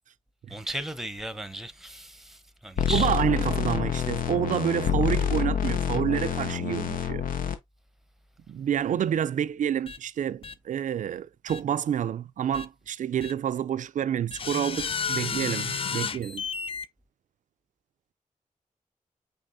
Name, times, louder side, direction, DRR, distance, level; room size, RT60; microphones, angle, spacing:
voice 1, 0.5-3.1, right 1 dB, 5° right, 0.8 m, -36 dB
sound 1, 2.8-7.6, left 8 dB, 85° left, 0.7 m, -27 dB
voice 2, 2.9-7.3 8.5-16.4, right 9 dB, 65° right, 0.4 m, -28 dB
sound 2, 9.9-10.0 10.4-10.5 11.5-11.6 12.5-12.7 13.2-13.3 14.3-16.9, left 6 dB, 40° left, 0.4 m, -32 dB
5.4 x 3.4 x 2.6 m
cardioid pair, 60°, 14 cm